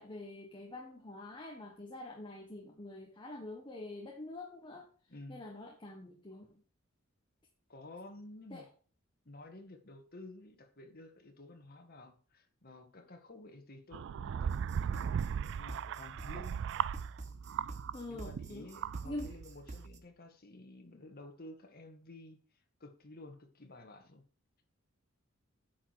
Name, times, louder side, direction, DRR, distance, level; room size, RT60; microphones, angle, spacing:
voice 1, 0.0-6.6 8.5-8.7 17.9-18.7 19.0-19.3, left 1 dB, 25° left, 1 dB, 1.4 m, -46 dB
voice 2, 5.1-5.4 7.7-8.7 9.3-16.7 18.1-22.4 22.8-24.2, left 2 dB, 45° left, 4 dB, 1.9 m, -52 dB
sound 1, 13.9-18.0 18.2-19.4, right 7 dB, 60° right, 0.3 m, -37 dB
sound 2, 14.5-20.0, right 3 dB, 35° right, 1.2 m, -48 dB
9.9 x 6.3 x 4.8 m, 0.39 s
head